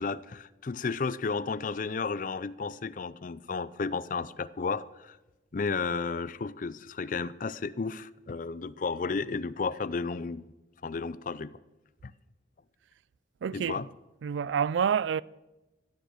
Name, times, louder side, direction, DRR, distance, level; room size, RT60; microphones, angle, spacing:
voice 1, 0.0-5.2 5.5-10.4 10.8-11.6 12.0-12.1 13.5-13.9, left 4 dB, 45° left, 0.4 m, -33 dB
voice 2, 13.4-13.8 14.2-15.2, right 7 dB, 85° right, 0.3 m, -27 dB
15.0 x 9.1 x 6.7 m
head